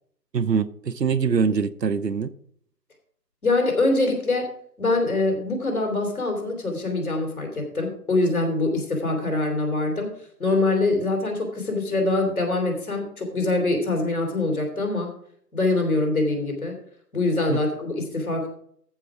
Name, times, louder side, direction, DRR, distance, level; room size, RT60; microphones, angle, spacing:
voice 1, 0.3-2.3 17.5-17.6, right 6 dB, 80° right, 13 dB, 0.8 m, -23 dB
voice 2, 3.4-4.5 4.8-10.1 10.4-15.1 15.5-16.7 17.1-18.5, left 2 dB, 60° left, 2 dB, 3.3 m, -24 dB
14.5 x 4.9 x 4.8 m, 0.64 s
figure-of-eight pair, 160°, 49 cm